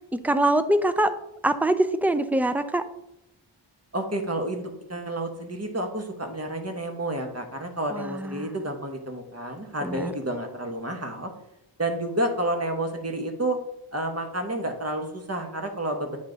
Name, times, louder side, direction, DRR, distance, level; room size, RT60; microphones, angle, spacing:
voice 1, 0.2-1.1 1.4-2.8 7.9-8.5 9.8-10.1, right 1 dB, 5° right, 11 dB, 0.4 m, -23 dB
voice 2, 3.9-11.3 11.8-13.6 13.9-16.2, right 1 dB, 30° right, 4 dB, 1.1 m, -30 dB
8.8 x 3.7 x 3.9 m, 0.84 s
wide cardioid pair, 55°, 47 cm